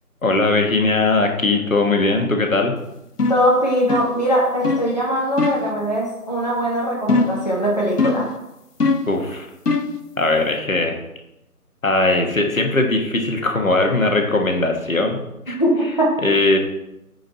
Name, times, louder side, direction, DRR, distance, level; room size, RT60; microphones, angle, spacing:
voice 1, 0.2-2.8 9.1-9.5 10.2-11.0 11.8-15.2 15.5-15.6 16.2-16.6, left 2 dB, 60° left, 3 dB, 1.5 m, -19 dB
sound 1, 3.2-3.5 3.9-4.2 4.6-4.9 5.4-5.7 7.1-7.5 8.0-8.3 8.8-9.1 9.7-10.0, left 3 dB, 80° left, 1.0 m, -20 dB
voice 2, 3.3-8.3 15.5-16.2, equal, 25° left, -4 dB, 0.9 m, -21 dB
9.2 x 5.0 x 4.1 m, 0.89 s
figure-of-eight pair, 170°, 46 cm